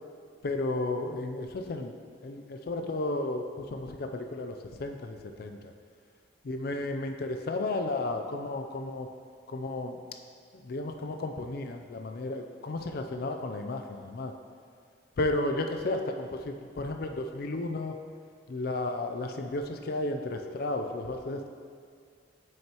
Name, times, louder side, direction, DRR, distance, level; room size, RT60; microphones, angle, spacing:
voice 1, 0.4-1.9 2.2-5.7 6.4-9.1 9.5-10.0 10.6-14.3 15.2-18.0 18.5-21.5, left 2 dB, 55° left, 5 dB, 0.4 m, -33 dB
8.9 x 6.4 x 2.9 m, 2.2 s
head